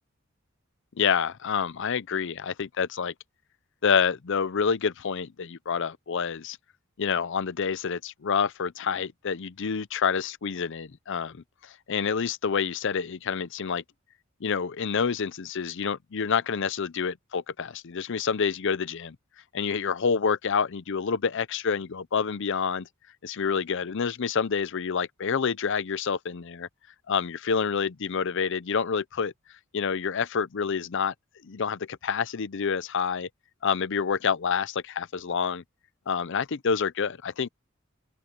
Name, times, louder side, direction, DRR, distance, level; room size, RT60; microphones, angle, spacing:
voice 1, 1.0-3.1 3.8-6.6 7.0-13.8 14.4-19.2 19.5-22.9 23.2-26.7 27.1-29.3 29.7-31.1 31.4-33.3 33.6-35.6 36.1-37.5, left 6 dB, 60° left, 0.6 m, -28 dB
open air
head